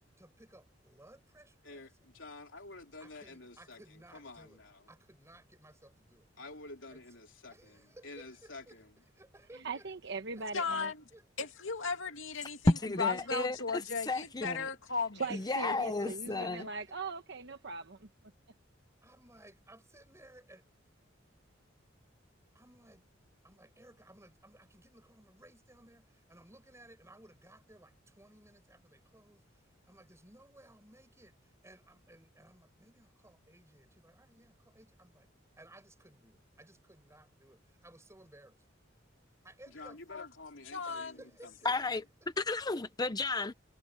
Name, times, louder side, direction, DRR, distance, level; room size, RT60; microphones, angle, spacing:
voice 1, 0.2-2.2 3.0-6.3 6.9-7.0 7.5-9.9 10.3-10.6 11.1-11.7 12.3-12.5 15.3-16.7 19.0-20.6 22.5-23.0 23.4-35.3 35.6-38.6 39.4-40.0 40.8-42.3 42.7-42.8, right 1 dB, 15° right, 6.5 m, -58 dB
voice 2, 2.1-3.8 4.1-4.8 6.4-8.9 39.7-41.5 41.8-42.0, left 3 dB, 75° left, 3.6 m, -49 dB
voice 3, 9.5-10.9 13.0-13.1 15.1-18.1, right 4 dB, 65° right, 1.1 m, -40 dB
voice 4, 10.5-11.0 11.4-12.7 13.0-15.2 40.1-40.2 40.7-41.2, left 4 dB, 90° left, 2.4 m, -35 dB
voice 5, 12.7-14.7 15.3-16.7 41.6-42.0 42.4-43.5, left 2 dB, 20° left, 0.6 m, -32 dB
head